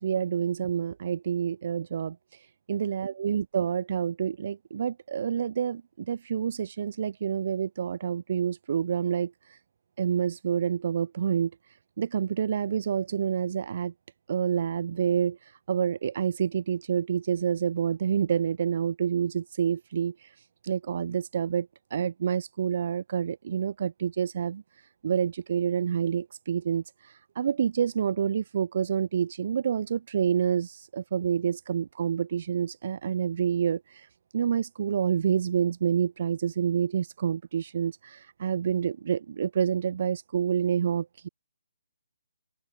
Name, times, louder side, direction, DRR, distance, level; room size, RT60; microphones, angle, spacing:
voice 1, 0.0-9.6 10.0-11.5 12.0-13.9 14.3-20.3 20.6-24.6 25.0-34.1 34.3-41.3, right 7 dB, 35° right, 4.1 m, -28 dB
open air
hypercardioid pair, 175°, 0 cm